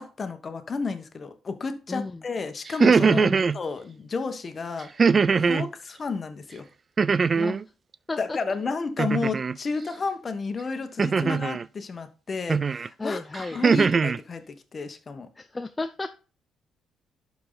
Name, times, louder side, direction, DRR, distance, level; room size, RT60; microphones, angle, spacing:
voice 1, 0.0-3.3 3.5-4.9 5.3-6.6 8.2-15.3, left 4 dB, 40° left, 1.3 m, -32 dB
voice 2, 1.9-2.2 3.1-3.5 5.4-5.7 7.4-7.6 8.1-8.4 11.2-11.4 13.0-13.6 15.4-16.1, left 3 dB, 20° left, 0.6 m, -33 dB
sound 1, 2.7-3.6 5.0-5.7 7.0-7.6 9.0-9.6 11.0-11.6 12.5-12.9 13.3-14.2, right 5 dB, 40° right, 0.3 m, -21 dB
11.5 x 4.7 x 4.0 m
cardioid pair, 90°, 0 cm